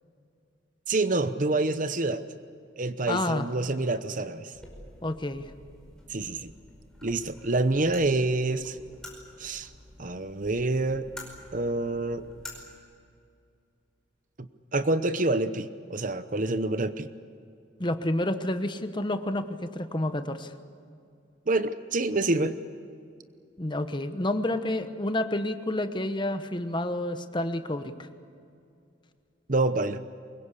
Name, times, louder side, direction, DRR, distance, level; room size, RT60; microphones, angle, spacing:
voice 1, 0.9-2.2 2.8-4.5 6.1-6.5 7.0-8.8 9.4-9.7 10.0-11.1 11.5-12.2 14.7-17.1 21.5-22.5 29.5-30.0, right 2 dB, 45° right, 12 dB, 0.9 m, -27 dB
voice 2, 3.1-3.5 5.0-5.5 17.8-20.5 23.6-28.1, left 1 dB, 25° left, 9 dB, 1.1 m, -29 dB
sound 1, 4.5-12.5, left 1 dB, 5° left, 5.2 m, -48 dB
24.0 x 22.0 x 8.3 m, 2.4 s
head